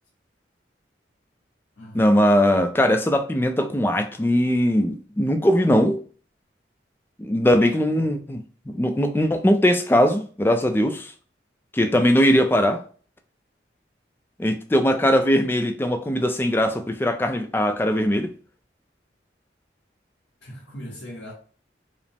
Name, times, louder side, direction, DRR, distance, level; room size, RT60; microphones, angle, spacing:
voice 1, 1.9-6.0 7.2-8.4 8.7-11.1 11.7-12.8 14.4-18.3, equal, 10° left, 0.3 m, -20 dB
voice 2, 7.6-8.2 20.4-21.3, equal, 85° left, 1.1 m, -40 dB
4.9 x 2.0 x 3.4 m
head